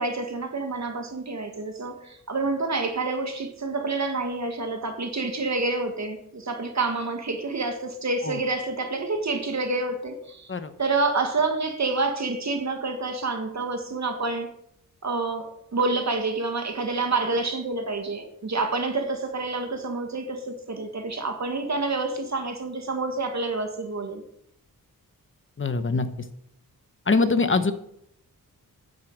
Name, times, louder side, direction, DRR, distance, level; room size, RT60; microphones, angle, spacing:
voice 1, 0.0-10.5 10.8-14.5 15.0-24.2, right 3 dB, 50° right, 5 dB, 1.8 m, -28 dB
voice 2, 25.6-26.1 27.1-27.7, left 3 dB, 35° left, 10 dB, 1.0 m, -23 dB
9.7 x 8.0 x 7.4 m, 0.73 s
wide cardioid pair, 125°, 36 cm